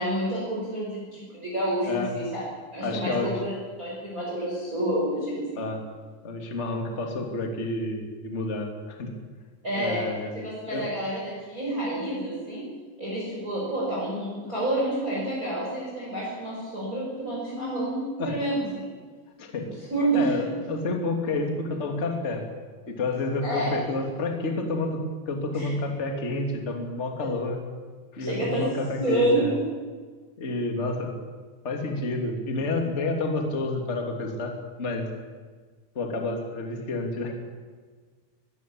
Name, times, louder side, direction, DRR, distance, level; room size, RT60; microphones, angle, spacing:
voice 1, 0.0-2.4 2.7-3.5 3.8-5.6 9.6-10.1 10.4-12.7 13.0-18.8 19.6-20.4 23.4-23.7 25.5-25.7 28.2-28.7 29.0-29.6, right 1 dB, 15° right, -5 dB, 5.6 m, -28 dB
voice 2, 2.8-3.3 5.6-5.8 6.2-9.1 9.7-10.3 10.7-10.9 18.2-18.4 19.4-19.7 20.1-22.4 22.9-25.0 25.2-27.6 28.1-29.5 30.4-31.1 31.6-34.5 34.8-35.1 35.9-37.4, left 2 dB, 20° left, 3 dB, 1.8 m, -29 dB
22.0 x 15.0 x 8.6 m, 1.5 s
omnidirectional pair, 5.4 m